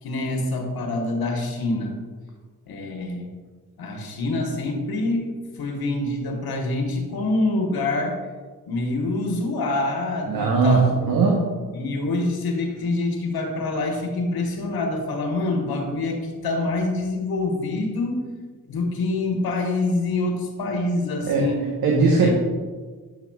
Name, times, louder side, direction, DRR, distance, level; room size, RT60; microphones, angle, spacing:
voice 1, 0.0-1.9 2.7-3.3 3.8-8.2 8.7-11.1 11.7-18.3 18.7-21.7 22.2-22.3, left 2 dB, 70° left, 2 dB, 1.2 m, -26 dB
voice 2, 10.3-10.8 11.1-11.4 21.2-21.4 21.8-22.3, right 4 dB, 65° right, -1 dB, 1.0 m, -19 dB
7.9 x 5.7 x 2.3 m, 1.4 s
supercardioid pair, 50°, 38 cm